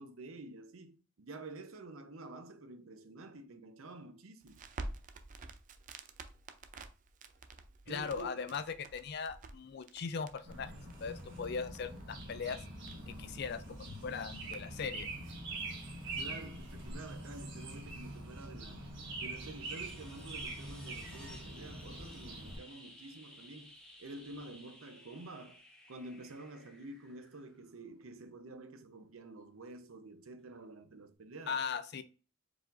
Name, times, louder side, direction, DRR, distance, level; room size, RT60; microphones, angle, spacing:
voice 1, 0.0-4.7 7.9-8.5 16.2-18.8 19.2-25.6 25.9-31.6, right 2 dB, 75° right, 0.7 m, -49 dB
Crackle, 4.4-14.9, right 2 dB, 35° right, 0.4 m, -50 dB
voice 2, 7.9-10.7 11.0-12.6 13.2-15.1 31.5-32.0, left 5 dB, 50° left, 0.4 m, -39 dB
sound 1, 10.5-22.6, right 2 dB, 55° right, 1.4 m, -44 dB
sound 2, 19.4-28.0 30.4-30.5, left 1 dB, 5° left, 0.9 m, -56 dB
4.7 x 3.9 x 2.5 m
head